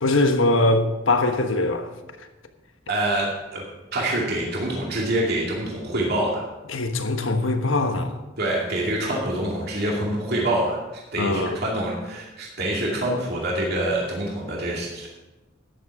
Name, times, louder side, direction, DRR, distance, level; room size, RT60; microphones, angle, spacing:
voice 1, 0.0-1.9 6.7-8.2 11.2-11.6, left 2 dB, 85° left, 1.2 m, -22 dB
voice 2, 2.9-3.6 3.9-6.5 8.4-10.8 11.1-15.1, right 1 dB, 55° right, 2.4 m, -26 dB
13.0 x 10.0 x 4.8 m
head